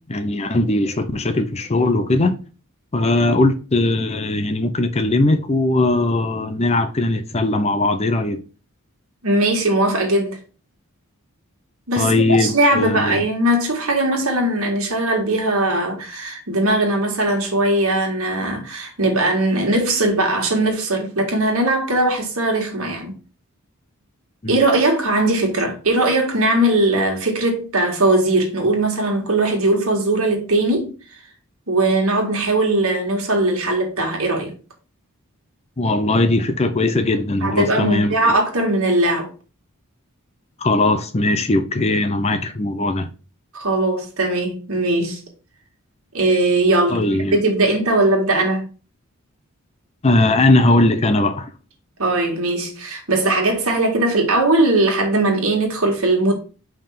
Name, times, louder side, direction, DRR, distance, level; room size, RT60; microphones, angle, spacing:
voice 1, 0.1-2.4 2.9-8.4 12.0-13.2 24.4-24.6 35.8-38.3 40.6-43.1 46.9-47.4 50.0-51.5, left 2 dB, 30° left, 0.6 m, -19 dB
voice 2, 9.2-10.4 11.9-23.1 24.5-30.9 31.7-34.5 37.4-39.3 43.5-45.2 46.1-47.0 47.3-48.6 52.0-56.3, right 2 dB, 70° right, 2.0 m, -19 dB
5.3 x 3.6 x 5.7 m
head